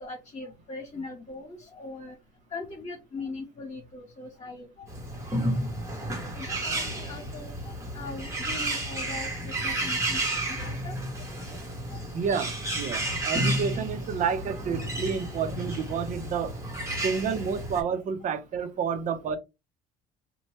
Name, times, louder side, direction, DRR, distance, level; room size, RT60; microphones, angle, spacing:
voice 1, 0.0-2.1 2.5-4.9 6.3-11.0 11.9-12.0, left 3 dB, 40° left, 1.2 m, -40 dB
Bird, 4.9-17.8, right 1 dB, 15° right, 1.2 m, -32 dB
voice 2, 12.1-16.5 17.0-19.4, right 6 dB, 50° right, 0.6 m, -30 dB
2.8 x 2.2 x 3.0 m
supercardioid pair, 90°, 17 cm